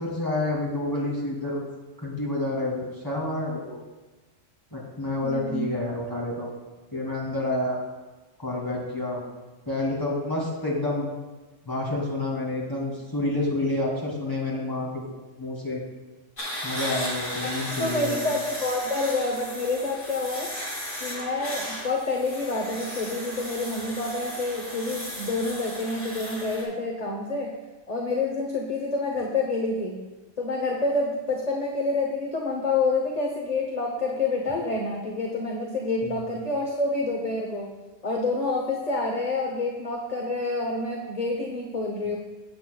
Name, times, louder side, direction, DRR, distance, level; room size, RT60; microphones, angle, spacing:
voice 1, 0.0-1.6 2.0-3.6 4.7-6.5 6.9-7.8 8.4-9.2 9.7-11.1 11.6-15.0 15.4-15.8 16.6-18.1 36.0-36.2, left 2 dB, 15° left, -4 dB, 2.6 m, -28 dB
voice 2, 5.2-5.7 17.4-17.5 17.8-20.5 21.0-27.5 27.9-30.0 30.4-37.7 38.0-42.2, left 3 dB, 35° left, 0 dB, 0.9 m, -28 dB
sound 1, 16.4-26.6, equal, 75° left, 2.9 m, -35 dB
15.5 x 8.1 x 2.3 m, 1.2 s
omnidirectional pair, 1.3 m